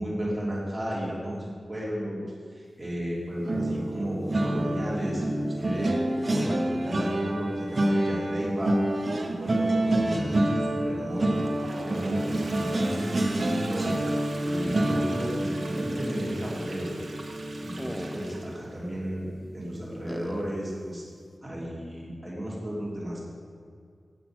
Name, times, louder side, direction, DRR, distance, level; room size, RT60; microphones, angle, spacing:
voice 1, 0.0-6.0 6.3-8.8 9.1-11.4 11.8-14.0 14.4-16.9 17.6-19.3 19.5-21.0 21.4-23.2, equal, 15° right, -5 dB, 2.9 m, -33 dB
sound 1, 3.5-18.6 19.0-19.3 19.6-19.8, right 1 dB, 40° right, 1.0 m, -28 dB
Toilet flush, 11.2-18.8, right 2 dB, 60° right, 1.3 m, -44 dB
sound 2, 14.6-15.4 15.8-15.9 17.8-18.6 20.1-20.6, equal, 10° left, 0.6 m, -38 dB
8.0 x 7.4 x 6.0 m, 2.2 s
wide cardioid pair, 90°, 0 cm